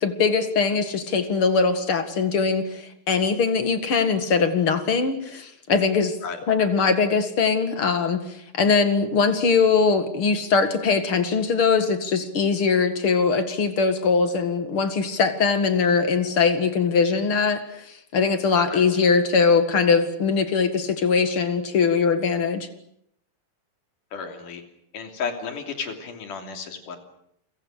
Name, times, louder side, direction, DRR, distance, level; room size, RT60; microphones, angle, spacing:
voice 1, 0.0-6.2 6.5-8.2 8.5-17.6 18.1-22.7, left 5 dB, 45° left, 9 dB, 2.3 m, -21 dB
voice 2, 24.1-24.6 24.9-27.0, left 5 dB, 60° left, 6 dB, 4.5 m, -33 dB
29.5 x 24.5 x 6.6 m, 0.71 s
omnidirectional pair, 4.2 m